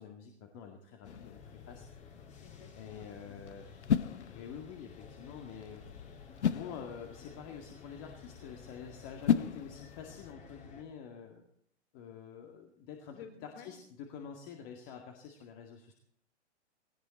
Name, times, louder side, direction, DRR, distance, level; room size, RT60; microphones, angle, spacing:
voice 1, 0.0-1.8 2.7-3.7 4.3-5.8 6.5-11.4 11.9-13.2 13.4-15.9, left 7 dB, 35° left, 2 dB, 2.1 m, -47 dB
sound 1, 1.0-10.3, left 8 dB, 70° left, 0.9 m, -37 dB
sound 2, 1.0-10.8, left 6 dB, 20° left, 2.6 m, -53 dB
voice 2, 2.4-3.1 13.1-13.7, left 7 dB, 50° left, 3 dB, 4.8 m, -52 dB
18.0 x 17.0 x 4.3 m, 0.66 s
figure-of-eight pair, 120°, 35 cm